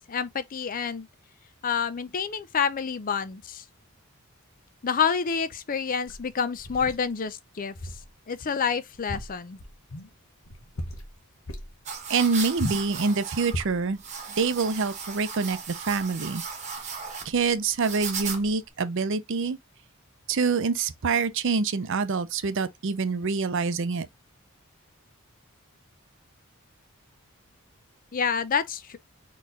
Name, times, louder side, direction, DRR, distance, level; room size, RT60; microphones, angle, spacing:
voice 1, 0.1-1.1 1.6-3.6 4.8-7.7 8.3-9.6 28.1-29.0, left 6 dB, 40° left, 0.5 m, -28 dB
sound 1, 6.1-7.1 7.7-8.1 8.4-8.5 8.9-10.1 10.5-11.1 11.5-11.7 12.6-12.9 13.5-13.9, left 1 dB, 80° left, 1.1 m, -36 dB
sound 2, 11.9-18.7, right 5 dB, 35° right, 1.2 m, -37 dB
voice 2, 12.1-14.0 14.3-16.4 17.2-19.6 20.3-24.1, right 4 dB, 60° right, 0.6 m, -26 dB
4.3 x 3.1 x 3.8 m
head